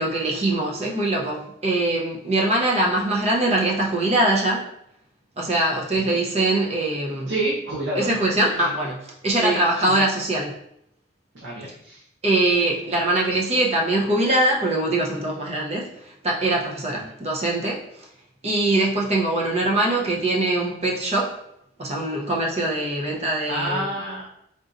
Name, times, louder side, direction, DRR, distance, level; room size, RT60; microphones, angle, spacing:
voice 1, 0.0-4.6 5.4-7.3 8.0-10.6 12.2-15.9 16.2-17.8 18.4-21.4 21.8-23.9, right 2 dB, 35° right, -2 dB, 0.7 m, -22 dB
voice 2, 7.3-8.1 9.3-10.0 11.3-12.0 16.9-17.1 23.5-24.3, right 2 dB, 80° right, -6 dB, 0.8 m, -28 dB
4.0 x 3.7 x 2.6 m, 0.76 s
head